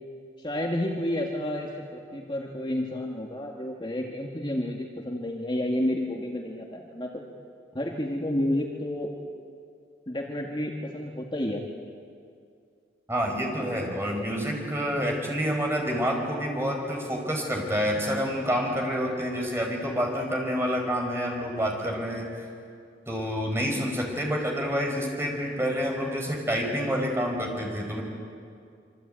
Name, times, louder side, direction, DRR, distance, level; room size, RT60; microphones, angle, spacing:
voice 1, 0.4-7.2 7.7-9.1 10.1-11.6, left 1 dB, 25° left, 0 dB, 1.9 m, -30 dB
voice 2, 13.1-22.3 23.1-28.0, equal, 15° right, 0 dB, 5.0 m, -28 dB
26.5 x 24.5 x 9.0 m, 2.3 s
head